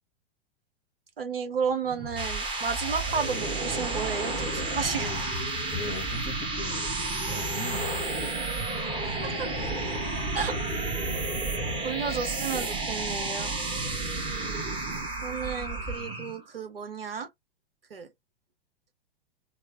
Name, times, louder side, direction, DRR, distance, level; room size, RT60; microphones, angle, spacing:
voice 1, 1.2-5.3 9.2-9.3 10.3-10.5 11.8-13.5 15.2-17.3 17.9-18.1, right 6 dB, 70° right, 0.9 m, -32 dB
sound 1, 1.9-16.4, right 2 dB, 15° right, 1.0 m, -31 dB
voice 2, 5.0-5.3 5.7-9.7 14.1-14.5, left 3 dB, 25° left, 0.7 m, -40 dB
3.1 x 2.0 x 2.7 m
figure-of-eight pair, 100°, 30 cm